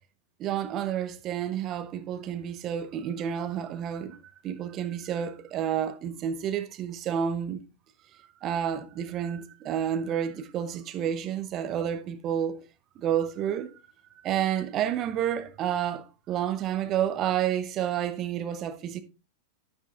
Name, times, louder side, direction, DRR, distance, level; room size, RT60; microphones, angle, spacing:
voice 1, 0.4-4.2 4.4-7.6 8.4-12.7 13.0-13.7 14.2-19.0, right 9 dB, 35° right, 0.8 m, -30 dB
11.0 x 10.0 x 2.5 m
figure-of-eight pair, 90°, 0 cm